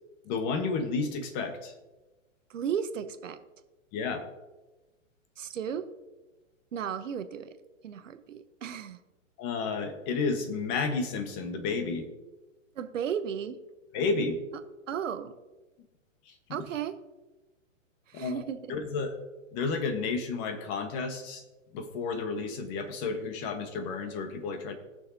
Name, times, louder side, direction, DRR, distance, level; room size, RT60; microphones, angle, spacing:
voice 1, 0.2-1.7 3.9-4.2 9.4-12.1 13.9-14.4 18.1-18.4 18.7-19.2 19.5-21.4 21.7-24.7, left 4 dB, 30° left, 7 dB, 1.3 m, -31 dB
voice 2, 2.5-3.4 5.4-5.9 6.7-7.6 7.8-9.0 12.7-13.6 14.9-15.3 16.5-17.0 18.1-18.7, right 8 dB, 70° right, 11 dB, 1.0 m, -34 dB
18.5 x 6.4 x 2.8 m, 1.1 s
hypercardioid pair, 130°, 39 cm